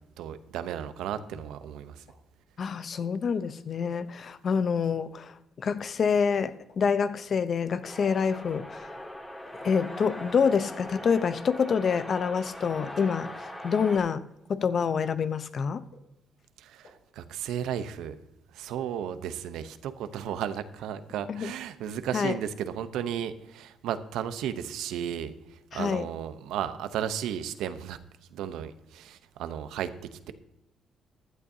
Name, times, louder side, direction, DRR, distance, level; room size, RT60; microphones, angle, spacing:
voice 1, 0.2-2.0 16.6-18.2 18.5-28.0 28.3-30.3, right 9 dB, 90° right, 0.8 m, -34 dB
sound 1, 2.1-2.2 3.0-3.1 3.9-4.0 4.8-4.9 5.8-5.9 6.7-6.8 7.6-7.7 8.5-8.6 9.5-9.6 10.4-10.5 11.3-11.4 12.2-12.3 13.1-13.2 14.1-14.2 15.0-15.1 15.9-16.0 16.8-16.9 17.8-17.9 18.7-18.8, left 4 dB, 80° left, 4.2 m, -54 dB
voice 2, 2.6-9.0 9.6-13.3 13.6-14.2 14.5-15.8 21.3-21.5 22.1-22.4 25.7-26.1, left 6 dB, 50° left, 0.7 m, -27 dB
sound 2, 7.8-14.0, left 1 dB, 15° left, 2.3 m, -41 dB
15.5 x 11.0 x 2.8 m
cardioid pair, 90°, 0 cm